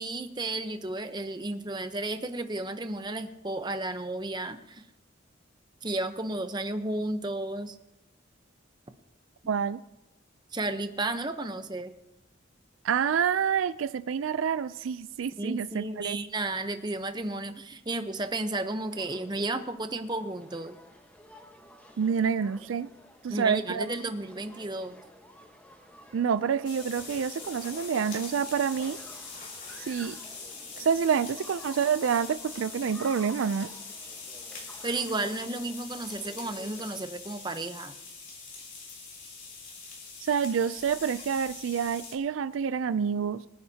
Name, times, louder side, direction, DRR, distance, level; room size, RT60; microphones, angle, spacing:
voice 1, 0.0-4.8 5.8-7.7 10.5-11.9 15.4-20.8 23.3-25.0 34.8-37.9, right 2 dB, 20° right, 8 dB, 0.8 m, -33 dB
voice 2, 9.5-9.8 12.8-16.2 22.0-22.9 23.2-24.1 26.1-29.0 29.8-30.2 30.8-33.7 40.2-43.5, right 7 dB, 90° right, 14 dB, 0.4 m, -28 dB
sound 1, 18.9-37.1, left 1 dB, 10° left, 1.2 m, -52 dB
sound 2, 26.6-42.2, left 4 dB, 45° left, 3.1 m, -43 dB
23.5 x 9.9 x 2.8 m, 0.92 s
head